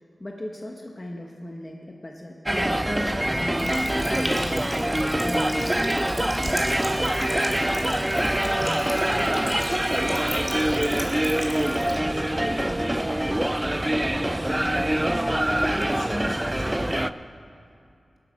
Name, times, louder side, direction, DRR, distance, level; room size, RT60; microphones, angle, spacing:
voice 1, 0.2-4.9 5.2-5.8, left 1 dB, 25° left, 1 dB, 1.0 m, -37 dB
sound 1, 2.5-17.1, right 1 dB, 15° right, 0.3 m, -24 dB
Water tap faucet, 3.6-12.0, equal, 10° left, 2.2 m, -37 dB
sound 2, 4.7-5.0 6.3-7.4 8.2-8.6 9.8-10.5, right 2 dB, 70° right, 3.5 m, -53 dB
voice 2, 8.6-13.1 13.5-16.9, equal, 70° left, -2 dB, 3.1 m, -44 dB
18.5 x 8.5 x 5.3 m, 2.6 s
wide cardioid pair, 70°, 0 cm